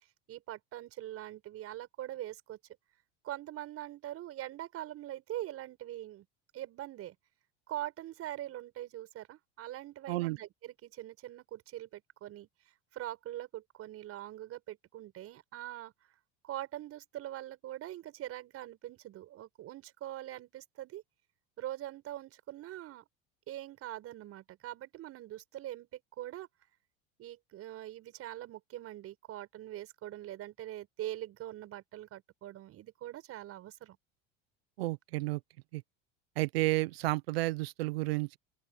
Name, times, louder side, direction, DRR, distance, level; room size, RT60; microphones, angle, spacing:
voice 1, 0.3-2.6 3.2-6.2 6.5-7.1 7.7-12.5 12.9-15.9 16.4-21.0 21.6-23.0 23.5-26.5 27.2-34.0, right 14 dB, 50° right, 6.6 m, -43 dB
voice 2, 34.8-35.4 35.7-35.8 36.4-38.4, right 20 dB, 85° right, 0.9 m, -31 dB
open air
supercardioid pair, 95°, 30 cm